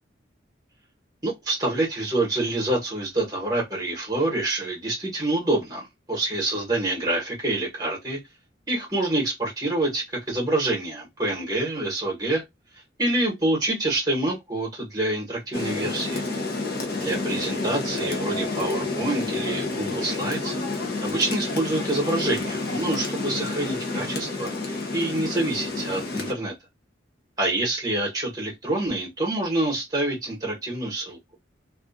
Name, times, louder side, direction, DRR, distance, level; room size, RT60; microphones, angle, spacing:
voice 1, 1.2-8.2 8.7-12.4 13.0-16.2 17.0-20.5 21.0-26.5 27.4-31.2, right 2 dB, 20° right, 1.0 m, -26 dB
Rain, 15.5-26.3, left 3 dB, 55° left, 0.6 m, -29 dB
2.4 x 2.3 x 2.4 m
head